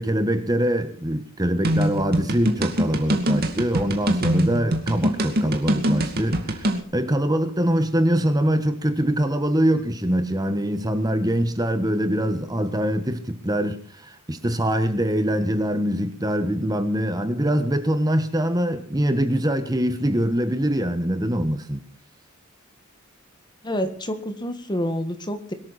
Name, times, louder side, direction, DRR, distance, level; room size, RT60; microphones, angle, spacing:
voice 1, 0.0-21.8, equal, 20° right, 1.3 m, -23 dB
sound 1, 1.6-6.8, equal, 50° right, 2.4 m, -23 dB
voice 2, 23.6-25.5, equal, 20° left, 1.7 m, -28 dB
22.5 x 13.0 x 4.2 m
head